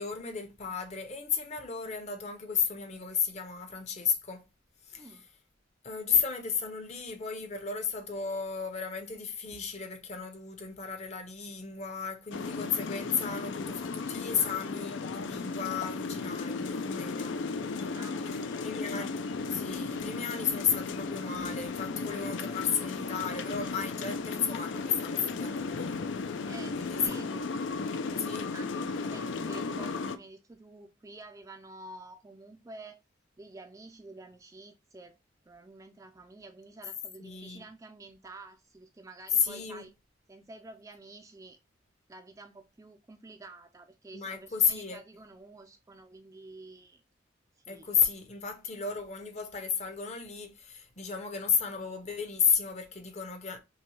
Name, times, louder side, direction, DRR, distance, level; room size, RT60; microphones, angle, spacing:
voice 1, 0.0-4.4 4.9-5.1 5.8-17.3 18.2-26.0 26.7-27.3 28.2-28.5 37.2-37.6 39.4-39.8 44.1-45.0 47.7-53.6, left 6 dB, 35° left, 0.8 m, -33 dB
voice 2, 4.9-5.3 17.8-18.7 26.4-27.5 28.0-33.0 33.4-35.2 35.5-39.9 40.3-41.6 42.1-47.0 47.6-47.9, right 2 dB, 15° right, 0.3 m, -50 dB
sound 1, 12.3-30.2, left 4 dB, 70° left, 0.4 m, -35 dB
5.7 x 2.2 x 3.1 m
head